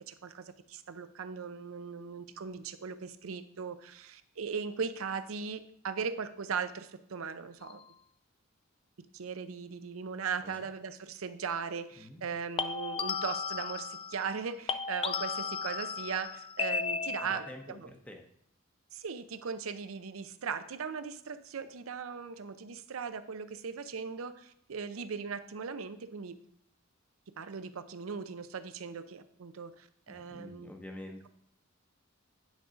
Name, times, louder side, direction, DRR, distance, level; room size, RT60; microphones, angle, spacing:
voice 1, 0.1-7.8 9.1-17.9 18.9-26.4 27.4-30.7, right 6 dB, 85° right, 11 dB, 0.6 m, -38 dB
sound 1, 7.6-7.9 12.6-14.4 14.7-17.6, left 5 dB, 25° left, 0.3 m, -35 dB
voice 2, 12.0-12.3 17.2-18.3 30.1-31.3, left 1 dB, 5° left, 3 dB, 0.8 m, -48 dB
9.2 x 3.9 x 5.0 m, 0.69 s
head